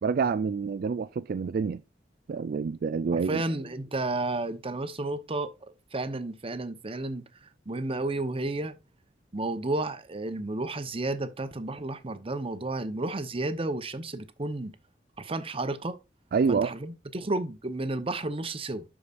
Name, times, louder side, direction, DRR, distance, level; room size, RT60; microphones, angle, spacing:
voice 1, 0.0-1.8 2.3-3.4 16.3-16.7, right 5 dB, 55° right, 0.3 m, -27 dB
voice 2, 3.1-8.8 9.3-14.7 15.2-16.0 16.5-18.8, right 2 dB, 35° right, 0.9 m, -32 dB
12.0 x 4.9 x 2.5 m
head